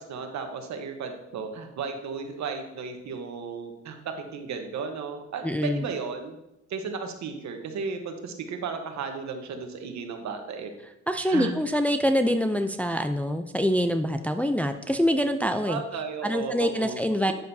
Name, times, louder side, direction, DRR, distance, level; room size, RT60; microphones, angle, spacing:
voice 1, 0.0-6.4 6.7-10.7 11.2-11.5 15.7-17.0, right 5 dB, 65° right, 5 dB, 1.2 m, -34 dB
voice 2, 5.4-5.9 11.1-15.8 16.2-17.3, equal, 5° left, 7 dB, 0.4 m, -25 dB
9.4 x 6.6 x 2.7 m, 0.87 s
cardioid pair, 90°, 30 cm